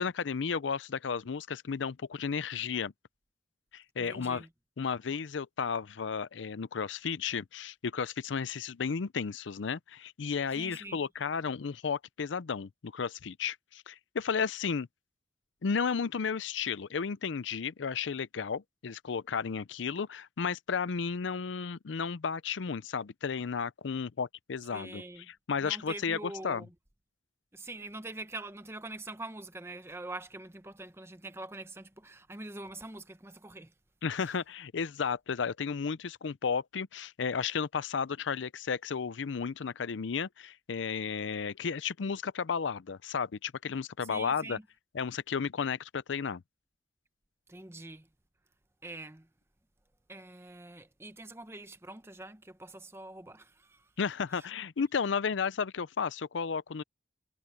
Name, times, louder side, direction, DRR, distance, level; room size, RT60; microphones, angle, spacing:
voice 1, 0.0-2.9 3.7-4.5 4.8-14.9 15.6-26.7 34.0-44.6 44.9-46.4 54.0-56.8, left 6 dB, 85° left, 0.5 m, -33 dB
voice 2, 4.0-4.5 10.6-11.0 24.7-25.3 25.6-26.7 27.5-33.7 44.0-44.6 47.5-48.1 48.8-49.3 50.1-53.9 54.3-54.4, right 2 dB, 15° right, 0.8 m, -44 dB
head